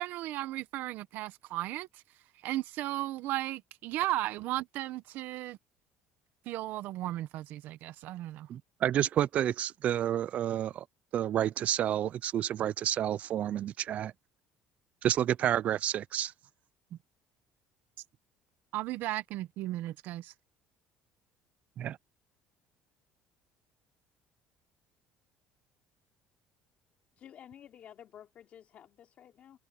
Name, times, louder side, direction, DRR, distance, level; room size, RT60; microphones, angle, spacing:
voice 1, 0.0-2.0 2.4-5.6 6.5-8.5 18.7-20.3, right 15 dB, 65° right, 1.1 m, -35 dB
voice 2, 8.5-10.8 11.1-14.1 15.0-16.3 21.8-22.0, right 11 dB, 45° right, 0.3 m, -30 dB
voice 3, 27.2-29.6, left 9 dB, 45° left, 3.0 m, -52 dB
cardioid pair, 145°, 3 cm